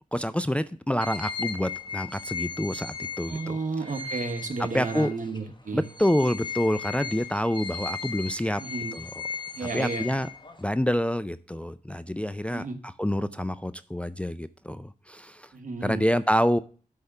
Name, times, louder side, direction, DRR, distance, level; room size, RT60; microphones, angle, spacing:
voice 1, 0.1-3.6 4.7-5.1 5.7-8.6 8.9-9.2 9.6-10.3 10.6-15.5 15.8-16.6, equal, 10° left, 13 dB, 0.4 m, -27 dB
sound 1, 1.0-5.4 5.8-10.7, left 5 dB, 30° left, 1.3 m, -37 dB
voice 2, 3.3-5.8 8.6-8.9 9.6-10.1 12.5-12.8 15.5-16.0, right 4 dB, 65° right, 6 dB, 1.3 m, -32 dB
8.0 x 3.6 x 6.6 m, 0.40 s
cardioid pair, 50°, 15 cm